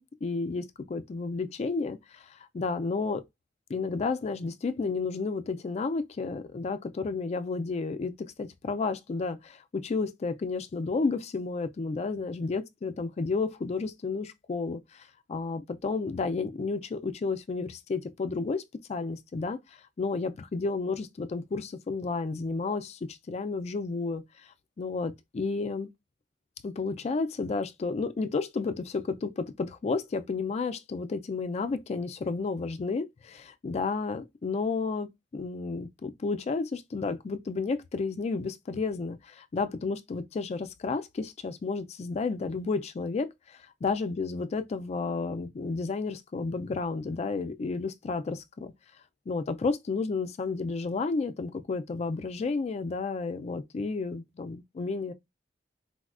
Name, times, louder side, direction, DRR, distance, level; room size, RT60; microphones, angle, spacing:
voice 1, 0.0-3.2 3.7-18.6 18.9-19.6 20.0-24.2 24.8-25.9 26.6-48.7 49.3-55.1, left 4 dB, 35° left, 0.3 m, -32 dB
4.0 x 2.2 x 2.4 m
head